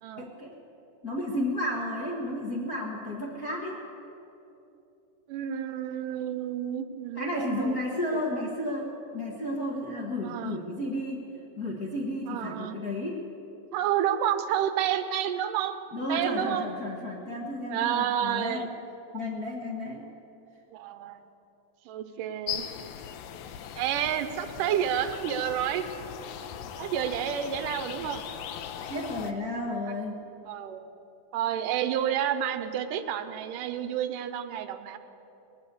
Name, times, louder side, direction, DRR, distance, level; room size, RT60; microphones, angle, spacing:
voice 1, 0.2-0.5 1.0-3.8 7.2-11.2 11.6-13.2 15.9-18.7 19.1-20.1 28.9-30.2, left 1 dB, 55° left, -3 dB, 1.0 m, -32 dB
voice 2, 5.3-7.8 8.1-8.5 10.2-10.6 12.3-12.8 13.7-15.8 16.1-16.7 17.7-18.7 20.7-21.2 21.9-22.7 23.8-25.8 26.8-28.3 29.9-30.0 30.5-30.8 31.3-35.0, right 10 dB, 90° right, 10 dB, 2.3 m, -30 dB
sound 1, 22.5-29.3, left 9 dB, 85° left, 1.5 m, -39 dB
20.0 x 8.0 x 8.2 m, 2.9 s
omnidirectional pair, 3.8 m